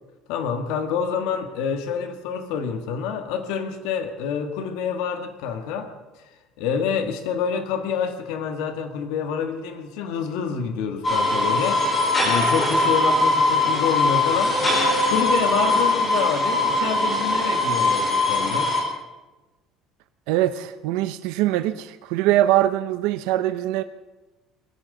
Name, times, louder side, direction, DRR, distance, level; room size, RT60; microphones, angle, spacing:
voice 1, 0.3-5.9 6.6-11.8 12.2-14.6 15.1-18.7, left 6 dB, 80° left, 6 dB, 1.7 m, -27 dB
sound 1, 11.0-18.8, left 2 dB, 15° left, 4.5 m, -21 dB
voice 2, 20.3-23.8, right 14 dB, 80° right, 11 dB, 0.7 m, -22 dB
21.0 x 17.0 x 3.9 m, 1.1 s
cardioid pair, 170°, 0 cm